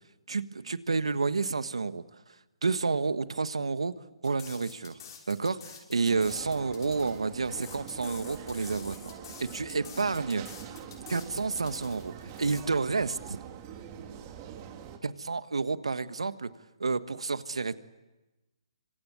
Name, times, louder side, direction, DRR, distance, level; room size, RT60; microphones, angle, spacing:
voice 1, 0.3-2.0 2.6-3.9 4.2-5.0 5.3-9.1 9.4-10.4 11.1-12.1 12.4-13.4 15.0-16.5 16.8-17.8, right 4 dB, 85° right, 12 dB, 1.4 m, -30 dB
sound 1, 4.2-12.6, left 8 dB, 50° left, 6.2 m, -49 dB
sound 2, 6.1-15.0, right 8 dB, 30° right, 2.9 m, -44 dB
27.0 x 26.0 x 8.4 m, 1.1 s
hypercardioid pair, 145°, 3 cm